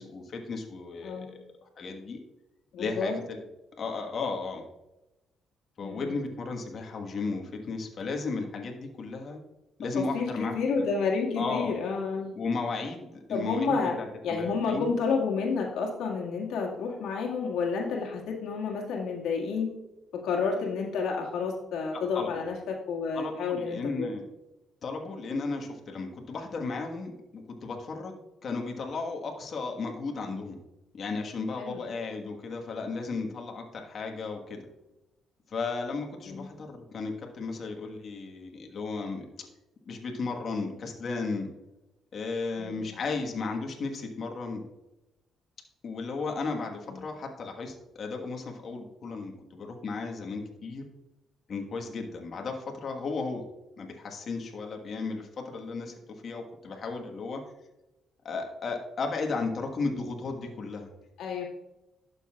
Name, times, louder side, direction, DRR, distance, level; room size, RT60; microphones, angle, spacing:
voice 1, 0.0-1.4 1.8-2.2 2.8-3.4 3.8-4.6 5.8-9.4 9.8-10.8 11.3-11.7 12.3-14.9 21.9-22.4 23.1-24.2 24.8-30.6 30.9-34.6 35.5-39.5 39.8-41.5 42.1-44.6 45.8-50.8 51.5-53.4 53.8-55.9 56.2-57.4 58.2-60.9, left 4 dB, 55° left, 2 dB, 1.4 m, -34 dB
voice 2, 2.7-3.2 5.8-6.2 10.0-12.3 13.3-14.0 14.2-19.7 20.2-24.1 31.6-31.8 36.3-36.5 42.6-43.0 46.9-47.1 61.2-61.4, left 5 dB, 85° left, -1 dB, 1.9 m, -30 dB
11.5 x 6.9 x 2.4 m, 0.97 s
cardioid pair, 90°, 0 cm